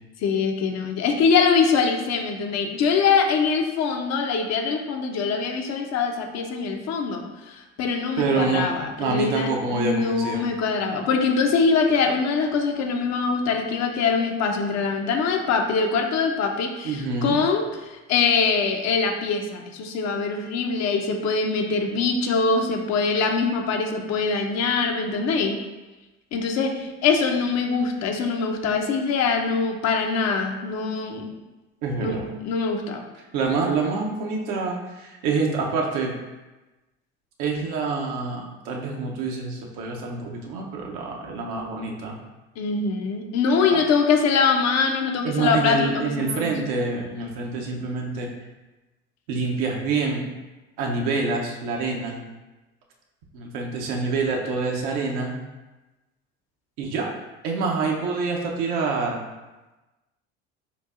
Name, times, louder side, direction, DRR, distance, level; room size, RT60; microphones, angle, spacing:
voice 1, 0.2-25.6 26.3-31.3 32.0-33.0 42.6-46.5, left 5 dB, 50° left, 3 dB, 0.8 m, -23 dB
voice 2, 8.2-8.7 9.0-10.5 16.8-17.4 31.8-32.3 33.3-36.1 37.4-42.2 43.7-43.8 45.2-48.3 49.3-50.2 50.8-52.2 53.3-55.3 56.8-57.1 57.4-59.2, right 4 dB, 65° right, 0 dB, 0.9 m, -26 dB
6.7 x 2.6 x 2.6 m, 1.1 s
hypercardioid pair, 70°, 35 cm